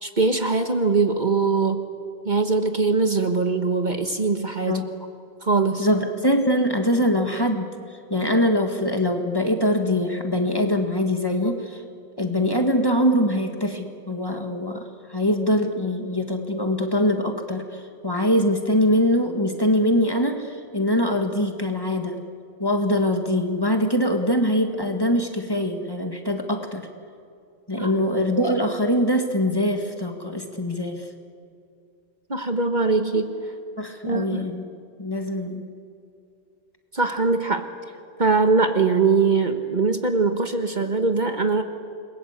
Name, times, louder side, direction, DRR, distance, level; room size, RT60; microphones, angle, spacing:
voice 1, 0.0-1.8 2.2-4.8 5.4-5.9 27.8-27.9 32.3-33.3 34.0-34.4 36.9-37.7 38.2-41.6, right 4 dB, 40° right, 6 dB, 1.5 m, -22 dB
voice 2, 5.8-7.7 8.1-11.8 12.2-22.2 22.6-26.9 27.7-31.1 33.8-34.6 35.0-35.7, equal, 20° left, 4 dB, 1.8 m, -23 dB
28.5 x 22.0 x 8.1 m, 2.5 s
omnidirectional pair, 1.2 m